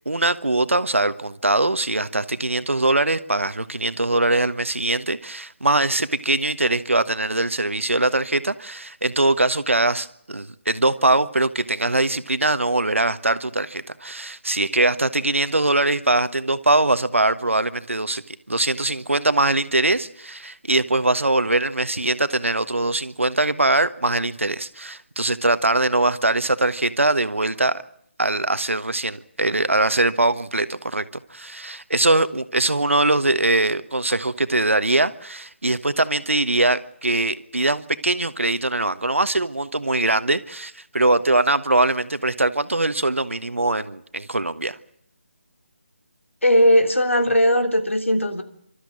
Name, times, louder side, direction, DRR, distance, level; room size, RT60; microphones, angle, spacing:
voice 1, 0.0-27.8 28.2-31.0 31.3-44.8, right 2 dB, 80° right, 1.4 m, -22 dB
voice 2, 46.4-48.4, equal, 85° left, 3.3 m, -18 dB
30.0 x 13.5 x 8.7 m
figure-of-eight pair, 150°, 7 cm